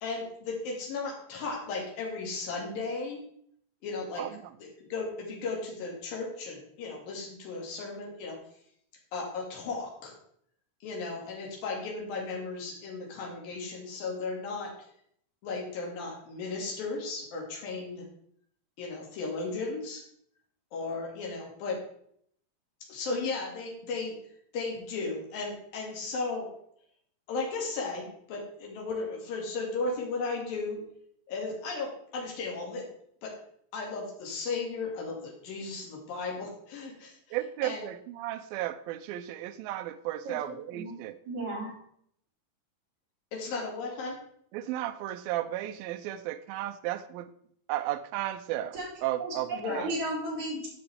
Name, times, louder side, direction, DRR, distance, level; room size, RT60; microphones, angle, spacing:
voice 1, 0.0-3.2 3.8-4.3 4.6-8.4 9.1-10.1 10.8-14.7 15.4-18.1 18.8-20.0 20.7-21.8 22.9-24.1 24.5-26.5 27.3-30.8 31.3-32.8 33.2-33.3 33.7-37.4 37.6-37.8 43.3-44.2 49.5-49.9, left 3 dB, 70° left, -1 dB, 3.8 m, -35 dB
voice 2, 4.2-4.5 37.3-41.2 44.5-47.3 47.7-49.9, right 14 dB, 80° right, 9 dB, 2.3 m, -34 dB
voice 3, 41.3-41.7 48.7-48.9 49.2-49.3 49.8-50.7, right 1 dB, 50° right, -7 dB, 5.1 m, -33 dB
13.5 x 5.9 x 3.4 m, 0.67 s
omnidirectional pair, 4.3 m